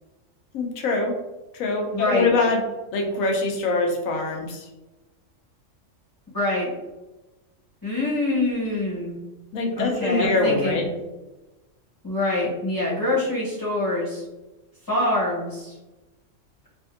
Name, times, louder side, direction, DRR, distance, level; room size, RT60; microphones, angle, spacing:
voice 1, 0.5-1.2 1.5-2.6 2.9-4.7 9.5-10.9, left 3 dB, 85° left, 1 dB, 1.0 m, -23 dB
voice 2, 1.9-2.3 6.3-6.7 7.8-9.2 9.8-10.9 12.0-14.2 14.9-15.8, left 2 dB, 20° left, -8 dB, 0.8 m, -25 dB
3.4 x 2.5 x 2.4 m, 1.1 s
omnidirectional pair, 1.4 m